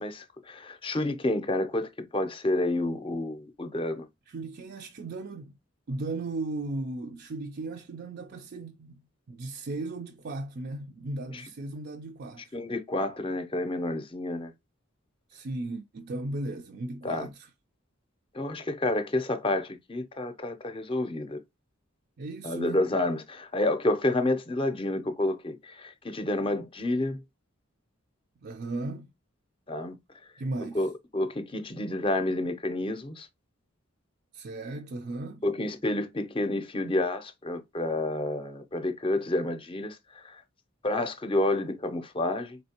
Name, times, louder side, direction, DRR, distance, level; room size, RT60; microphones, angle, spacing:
voice 1, 0.0-4.1 11.3-11.4 12.5-14.5 17.0-17.3 18.3-21.4 22.4-27.2 29.7-30.0 30.7-33.3 35.4-40.4 40.8-42.6, left 2 dB, 25° left, 0.6 m, -29 dB
voice 2, 4.3-5.5 5.9-9.0 9.3-12.5 15.3-17.5 22.2-22.8 28.4-29.1 30.4-30.8 34.3-35.4, right 2 dB, 50° right, 0.4 m, -36 dB
4.2 x 3.2 x 2.8 m
head